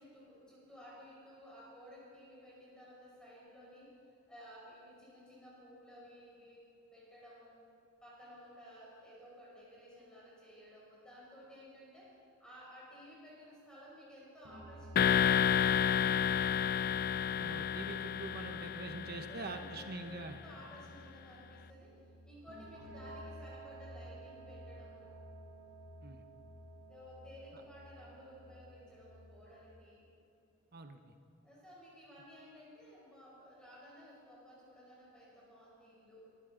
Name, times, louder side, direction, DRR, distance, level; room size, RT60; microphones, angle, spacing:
voice 1, 0.0-3.9 4.3-6.7 6.9-7.6 8.0-12.1 12.4-16.3 19.3-19.9 20.3-21.9 22.2-25.2 26.8-30.0 31.4-36.2, equal, 5° left, -7 dB, 5.0 m, -55 dB
sound 1, 14.4-29.6, right 1 dB, 80° right, 4.3 m, -52 dB
sound 2, 15.0-19.9, left 8 dB, 45° left, 0.3 m, -31 dB
voice 2, 17.4-20.4 26.0-26.2 30.7-31.1, right 3 dB, 50° right, 6 dB, 1.0 m, -45 dB
23.5 x 15.5 x 3.9 m, 2.6 s
head